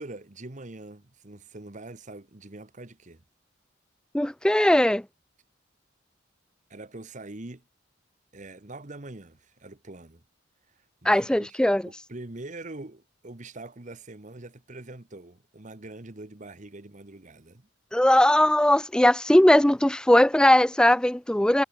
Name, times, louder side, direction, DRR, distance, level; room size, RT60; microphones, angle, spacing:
voice 1, 0.0-3.2 6.7-7.6 8.3-10.2 10.8-17.7, right 2 dB, 35° right, 1.2 m, -43 dB
voice 2, 4.1-5.0 11.1-11.8 17.9-21.6, left 1 dB, 5° left, 0.3 m, -19 dB
head